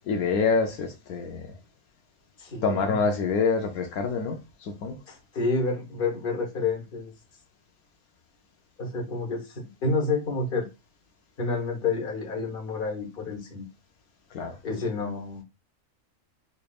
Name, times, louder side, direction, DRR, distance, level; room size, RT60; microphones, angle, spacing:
voice 1, 0.0-1.6 2.6-5.0 14.3-14.6, left 4 dB, 80° left, 1.1 m, -26 dB
voice 2, 2.4-2.8 5.1-7.1 8.8-10.7 11.4-13.7 14.6-15.4, left 3 dB, 40° left, 1.3 m, -29 dB
4.0 x 3.3 x 2.3 m
omnidirectional pair, 1.6 m